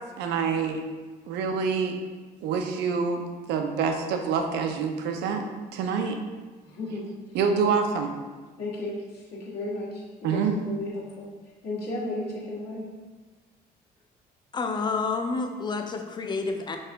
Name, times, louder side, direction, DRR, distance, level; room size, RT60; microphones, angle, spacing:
voice 1, 0.2-0.8 1.3-2.0 2.4-5.4 5.7-6.2 7.3-8.1 10.2-10.6, right 6 dB, 85° right, 5 dB, 0.6 m, -26 dB
voice 2, 6.6-7.1 7.6-7.7 8.6-11.3 11.6-12.9, left 2 dB, 70° left, -5 dB, 1.4 m, -34 dB
voice 3, 14.5-16.8, left 4 dB, 25° left, 4 dB, 0.5 m, -29 dB
5.6 x 2.8 x 3.4 m, 1.3 s
cardioid pair, 110°, 17 cm